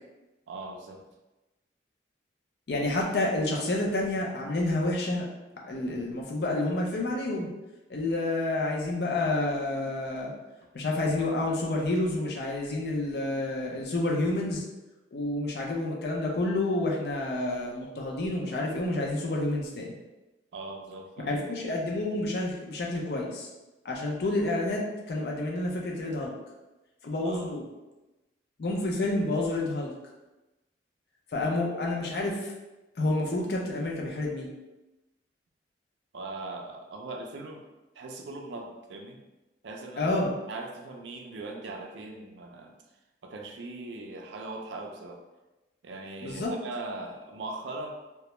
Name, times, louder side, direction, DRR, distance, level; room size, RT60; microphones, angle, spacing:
voice 1, 0.5-1.0 20.5-21.3 27.2-27.5 36.1-37.6 38.0-39.2 39.6-40.1 40.5-42.7 43.2-45.2 45.8-47.9, right 2 dB, 70° right, 2 dB, 0.4 m, -40 dB
voice 2, 2.7-5.3 5.6-7.5 7.9-10.3 10.7-14.6 15.1-19.9 21.2-23.5 23.8-26.3 27.0-27.6 28.6-29.9 31.3-32.5 33.0-34.5 40.0-40.3 46.2-46.5, left 2 dB, 55° left, -1 dB, 0.4 m, -29 dB
2.2 x 2.0 x 2.9 m, 1.1 s
head